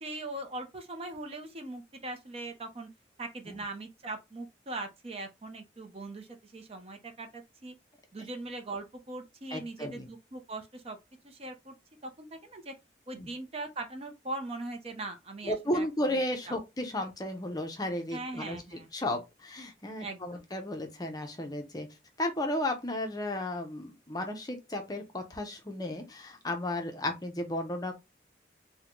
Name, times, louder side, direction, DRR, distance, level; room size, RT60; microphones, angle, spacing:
voice 1, 0.0-2.9 3.2-7.7 8.1-11.0 11.2-11.7 12.0-12.7 13.1-15.9 16.5-16.6 18.1-18.9 20.0-20.4, right 2 dB, 35° right, 0.6 m, -40 dB
voice 2, 9.5-10.1 13.2-13.3 15.4-18.6 18.9-21.9 22.2-27.9, left 1 dB, 20° left, 0.6 m, -34 dB
3.7 x 2.2 x 2.9 m
head